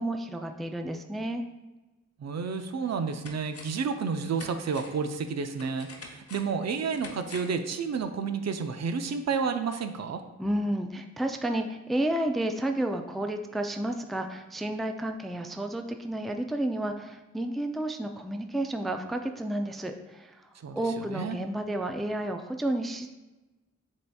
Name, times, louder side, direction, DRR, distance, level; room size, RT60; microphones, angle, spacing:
voice 1, 0.0-1.4 10.4-20.3 20.7-23.1, right 1 dB, ahead, 5 dB, 0.3 m, -31 dB
voice 2, 2.2-10.2 20.6-20.8 21.1-21.4, right 5 dB, 60° right, 8 dB, 0.4 m, -30 dB
sound 1, 2.3-2.4 2.8-3.9 4.3-7.7 8.0-8.1, left 3 dB, 50° left, 0.7 m, -47 dB
7.5 x 2.8 x 2.3 m, 1.1 s
cardioid pair, 50°, 30 cm